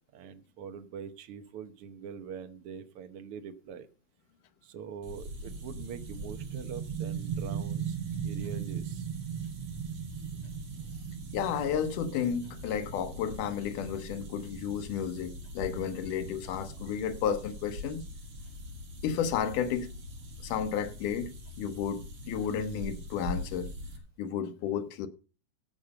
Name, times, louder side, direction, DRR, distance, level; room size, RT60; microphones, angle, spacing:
voice 1, 0.1-3.9 4.6-8.0 8.2-9.1, right 7 dB, 65° right, 1.5 m, -43 dB
sound 1, 5.0-24.0, left 1 dB, 45° right, 3.0 m, -43 dB
sound 2, 5.5-16.9, right 9 dB, 80° right, 1.2 m, -39 dB
voice 2, 11.3-18.0 19.0-19.9 20.4-23.7 24.2-25.1, left 8 dB, 80° left, 2.5 m, -32 dB
16.0 x 5.5 x 6.6 m
omnidirectional pair, 3.7 m